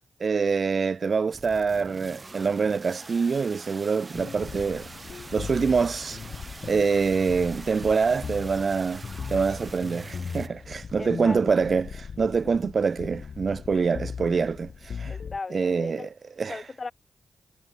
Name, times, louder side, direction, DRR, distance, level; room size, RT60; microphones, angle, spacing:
voice 1, 0.2-4.9 5.3-6.2 6.6-9.0 9.3-15.1 15.5-16.1 16.4-16.6, right 5 dB, 55° right, 0.3 m, -25 dB
sound 1, 1.3-10.5, right 3 dB, 35° right, 1.5 m, -44 dB
sound 2, 4.1-15.4, left 6 dB, 65° left, 2.2 m, -39 dB
voice 2, 11.0-11.4 12.4-12.5 15.1-16.1 16.5-16.9, left 4 dB, 45° left, 1.1 m, -37 dB
cardioid pair, 55°, 0 cm